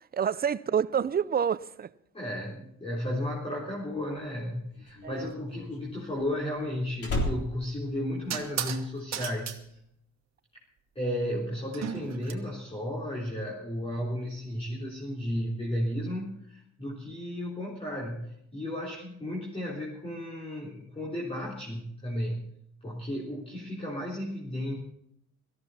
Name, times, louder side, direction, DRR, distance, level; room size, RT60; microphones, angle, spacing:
voice 1, 0.1-1.9 5.0-5.3, right 8 dB, 30° right, 0.5 m, -28 dB
voice 2, 2.1-9.8 11.0-22.5 22.8-24.8, left 1 dB, 20° left, 3.8 m, -34 dB
Slam, 4.0-8.8 9.1-9.5, left 1 dB, 50° left, 3.8 m, -35 dB
sound 1, 7.0-7.2 8.3-8.8 9.1-9.6 11.7-12.3, right 9 dB, 60° right, 1.5 m, -35 dB
17.5 x 14.5 x 4.3 m
cardioid pair, 90°, 30 cm